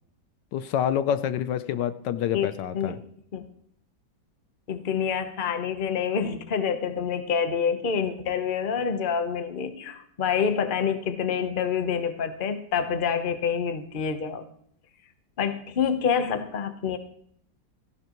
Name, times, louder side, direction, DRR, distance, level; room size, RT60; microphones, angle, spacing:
voice 1, 0.5-3.0, left 9 dB, 75° left, 12 dB, 1.3 m, -27 dB
voice 2, 4.7-14.4 15.4-17.0, left 7 dB, 35° left, 8 dB, 0.9 m, -27 dB
16.5 x 14.5 x 3.0 m, 0.66 s
omnidirectional pair, 1.9 m